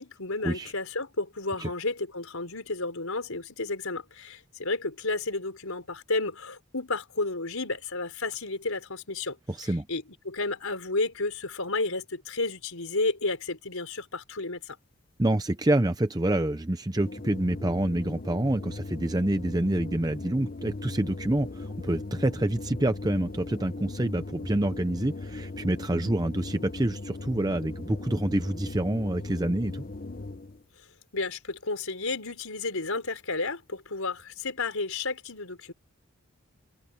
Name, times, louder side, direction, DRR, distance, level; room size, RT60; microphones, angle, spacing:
voice 1, 0.0-9.4 9.6-14.8 31.1-35.7, left 3 dB, 90° left, 5.1 m, -32 dB
voice 2, 9.5-9.9 15.2-29.8, right 1 dB, 20° right, 0.6 m, -27 dB
sound 1, 17.0-30.6, left 2 dB, 40° left, 0.8 m, -39 dB
head